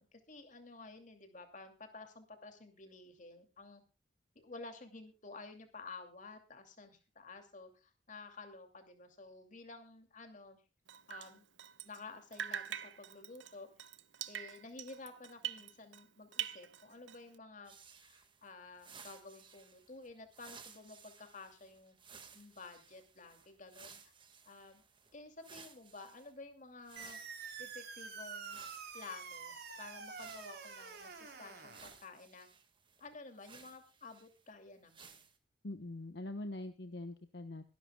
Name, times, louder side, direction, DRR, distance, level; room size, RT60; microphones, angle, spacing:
voice 1, 0.0-3.8 4.3-10.6 11.1-11.5 11.8-13.7 14.3-22.0 22.3-24.0 24.4-24.8 25.1-27.2 27.6-28.6 28.9-32.5 33.0-35.3, left 3 dB, 40° left, 6 dB, 2.6 m, -52 dB
Drip, 10.9-12.1 12.3-16.1 16.3-17.3, right 10 dB, 75° right, 0.8 m, -44 dB
sound 1, 17.6-26.3 26.8-28.0 28.4-31.1 31.6-34.5 34.9-35.4, right 6 dB, 25° right, 1.8 m, -58 dB
sound 2, 27.0-32.0, right 5 dB, 55° right, 3.3 m, -47 dB
voice 2, 35.6-37.6, left 2 dB, 60° left, 8 dB, 1.1 m, -43 dB
23.0 x 12.0 x 2.3 m, 0.30 s
head